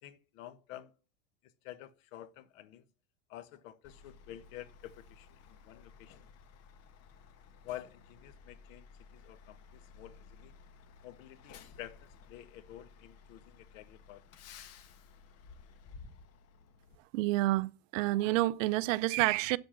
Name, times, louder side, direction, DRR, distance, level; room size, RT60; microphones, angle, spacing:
voice 1, 0.0-0.9 1.4-2.8 3.3-6.3 7.6-8.9 9.1-10.5 11.0-14.2, left 12 dB, 60° left, 1.3 m, -49 dB
Truck, 3.8-17.0, left 5 dB, 35° left, 1.1 m, -56 dB
voice 2, 17.1-19.6, right 18 dB, 60° right, 0.7 m, -29 dB
8.3 x 7.9 x 7.2 m
supercardioid pair, 150°, 44 cm